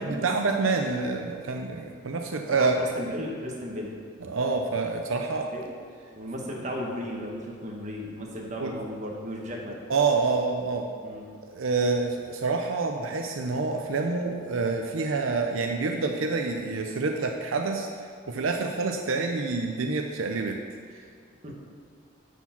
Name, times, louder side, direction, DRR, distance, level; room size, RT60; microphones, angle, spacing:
voice 1, 0.0-2.8 4.2-5.5 8.6-8.7 9.9-10.9 11.5-17.9 18.3-20.6, right 4 dB, 80° right, 3 dB, 0.6 m, -27 dB
voice 2, 2.6-4.0 5.1-5.2 5.5-5.8 6.1-9.8 11.0-11.3 21.4-21.5, equal, 35° right, -1 dB, 1.3 m, -35 dB
9.9 x 4.5 x 5.9 m, 2.2 s
head